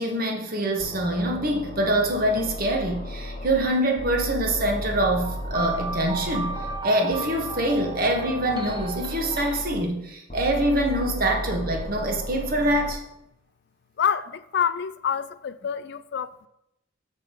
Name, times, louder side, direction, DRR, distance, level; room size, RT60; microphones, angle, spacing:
voice 1, 0.0-6.6 6.8-13.0, right 1 dB, 45° right, 1.4 m, -25 dB
sound 1, 0.8-3.7 4.0-6.8 7.1-9.8 10.3-12.9, equal, 35° left, 1.0 m, -35 dB
sound 2, 5.2-9.6, right 3 dB, 20° right, 1.0 m, -35 dB
voice 2, 14.0-16.5, left 7 dB, 55° left, 0.3 m, -27 dB
6.5 x 6.0 x 5.1 m
head